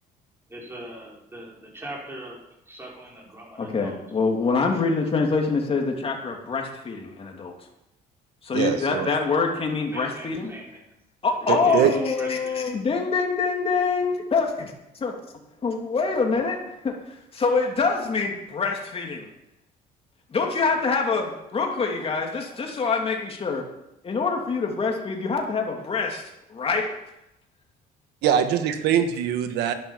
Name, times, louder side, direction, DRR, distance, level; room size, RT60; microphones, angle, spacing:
voice 1, 0.5-2.4 2.7-4.0 9.9-10.9 11.6-12.6, right 1 dB, 15° right, -4 dB, 5.9 m, -40 dB
voice 2, 3.6-7.5 8.4-10.5 11.2-14.7 15.0-15.1 15.6-17.0 17.3-19.3 20.3-23.6 24.0-26.9, left 4 dB, 35° left, 2 dB, 3.0 m, -25 dB
voice 3, 8.5-9.1 11.5-11.9 28.2-29.7, right 9 dB, 85° right, 8 dB, 1.5 m, -22 dB
11.5 x 10.5 x 7.3 m, 0.86 s
cardioid pair, 110°, 17 cm